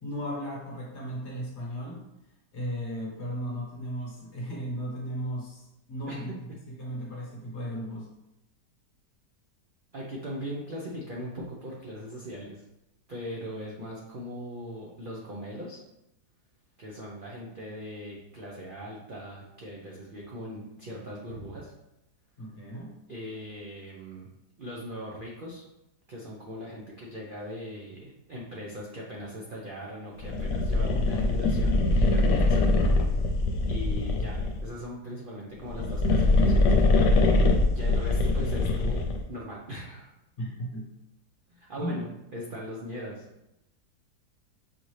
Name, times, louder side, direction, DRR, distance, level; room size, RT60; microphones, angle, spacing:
voice 1, 0.0-2.0 2.5-8.1 22.4-23.0 40.4-40.9 41.8-42.1, equal, 45° left, -3 dB, 1.2 m, -35 dB
voice 2, 9.9-12.6 13.1-15.8 16.8-21.7 23.1-24.3 24.6-25.6 26.1-31.8 32.1-32.6 33.7-37.4 37.6-39.0 39.3-40.1 41.5-42.1 42.3-43.3, equal, 55° right, -3 dB, 0.5 m, -40 dB
sound 1, 30.2-34.7 35.6-39.3, left 2 dB, 85° left, 1.2 m, -23 dB
6.1 x 2.7 x 3.1 m, 0.88 s
omnidirectional pair, 1.8 m